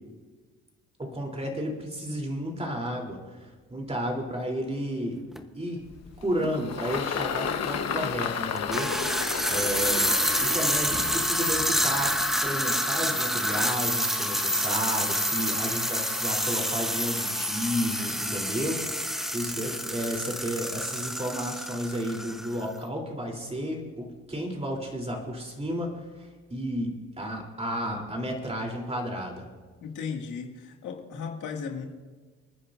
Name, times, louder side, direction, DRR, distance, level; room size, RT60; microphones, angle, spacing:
voice 1, 1.0-5.2 5.5-5.8 6.2-8.9 9.5-10.1 10.4-12.1 12.4-29.4, equal, 20° right, 1 dB, 3.3 m, -32 dB
sound 1, 5.3-5.4 6.4-6.5 8.6-22.7, equal, ahead, 0.9 m, -28 dB
Engine, 5.9-12.5, left 7 dB, 55° left, 1.1 m, -33 dB
voice 2, 29.8-31.8, left 6 dB, 80° left, 1 dB, 2.1 m, -36 dB
29.5 x 9.8 x 2.6 m, 1.4 s
cardioid pair, 90°, 30 cm